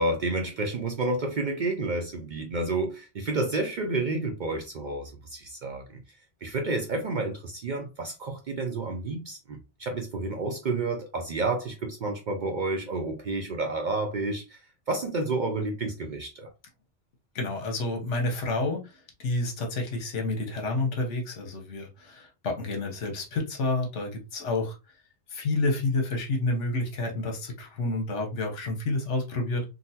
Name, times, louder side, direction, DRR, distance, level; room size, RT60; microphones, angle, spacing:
voice 1, 0.0-6.0 6.4-14.6 14.9-16.5, right 2 dB, 60° right, 0.5 m, -30 dB
voice 2, 17.3-24.8 25.3-29.6, left 2 dB, 80° left, 1.2 m, -29 dB
3.8 x 2.0 x 2.7 m
omnidirectional pair, 1.2 m